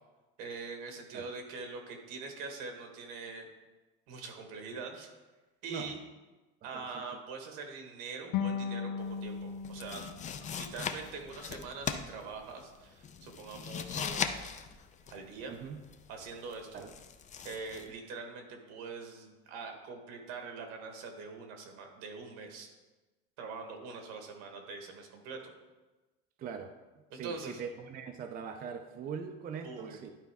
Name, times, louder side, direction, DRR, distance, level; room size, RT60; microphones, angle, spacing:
voice 1, 0.4-3.5 4.1-5.1 5.6-6.0 6.6-10.0 10.3-14.4 15.1-15.6 16.1-16.8 17.4-22.7 23.4-25.5 27.1-27.6 29.6-30.0, right 4 dB, 80° right, 4 dB, 1.5 m, -43 dB
sound 1, 8.3-11.4, left 7 dB, 75° left, 0.6 m, -37 dB
sound 2, 9.0-17.9, left 7 dB, 25° left, 0.4 m, -40 dB
voice 2, 15.5-15.8 16.7-16.9 26.4-26.7 27.1-30.1, right 6 dB, 30° right, 6 dB, 0.5 m, -41 dB
11.0 x 4.3 x 3.5 m, 1.2 s
cardioid pair, 130°, 29 cm